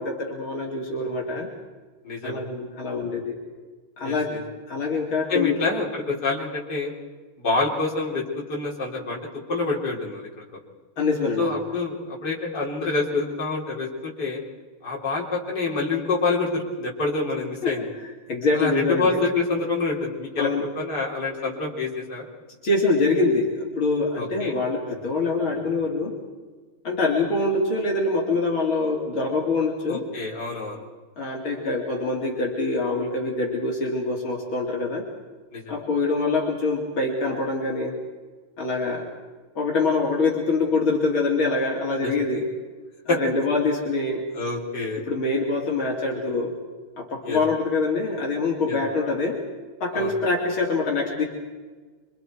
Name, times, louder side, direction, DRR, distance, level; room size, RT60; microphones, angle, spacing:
voice 1, 0.0-1.5 2.2-3.4 4.0-4.3 4.7-5.6 11.0-11.6 17.6-17.7 18.0-19.2 20.4-20.7 22.6-26.1 26.8-30.1 31.2-35.1 35.7-38.0 38.6-39.1 39.6-42.5 43.1-44.2 45.1-46.6 47.0-49.4 49.8-51.2, left 3 dB, 70° left, -2 dB, 3.9 m, -24 dB
voice 2, 2.0-2.4 4.0-4.4 5.3-6.9 7.4-8.2 8.5-9.2 9.5-10.3 11.4-14.4 14.8-17.8 18.5-22.2 24.2-24.5 29.9-30.8 35.5-35.8 42.0-42.1 43.1-43.2 44.3-45.0 47.2-47.4 48.7-48.8 49.9-50.1, left 3 dB, 50° left, -3 dB, 4.4 m, -27 dB
26.5 x 25.5 x 4.7 m, 1.4 s
omnidirectional pair, 2.3 m